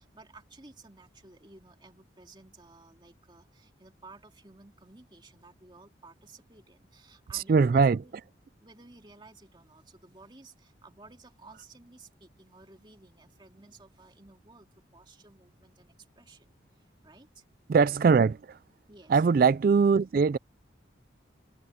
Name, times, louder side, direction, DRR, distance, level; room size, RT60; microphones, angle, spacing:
voice 1, 0.0-8.2 8.6-17.4 18.9-19.2, right 3 dB, 25° right, 2.3 m, -55 dB
voice 2, 7.3-8.0 17.7-18.6 19.1-20.4, right 5 dB, 50° right, 0.3 m, -22 dB
head